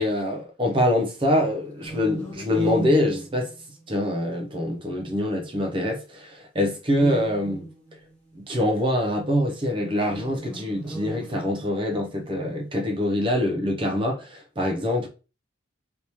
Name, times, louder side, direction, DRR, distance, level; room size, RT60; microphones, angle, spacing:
voice 1, 0.0-3.5 3.9-7.7 8.3-15.1, left 1 dB, 25° right, 0.5 m, -24 dB
sound 1, 1.8-4.1 6.9-8.2 10.0-11.9, right 2 dB, 10° left, 1.0 m, -36 dB
3.4 x 2.8 x 2.9 m
head